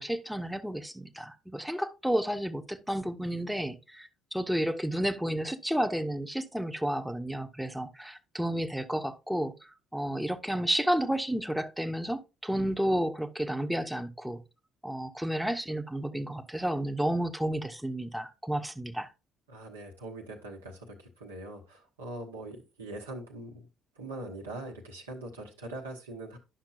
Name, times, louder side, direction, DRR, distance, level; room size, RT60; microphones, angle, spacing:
voice 1, 0.0-9.5 9.9-14.4 14.8-19.1, right 1 dB, 5° right, 0.8 m, -31 dB
voice 2, 19.5-23.7 24.0-26.4, right 2 dB, 85° right, 1.1 m, -42 dB
10.0 x 5.8 x 2.5 m
figure-of-eight pair, 50°, 0 cm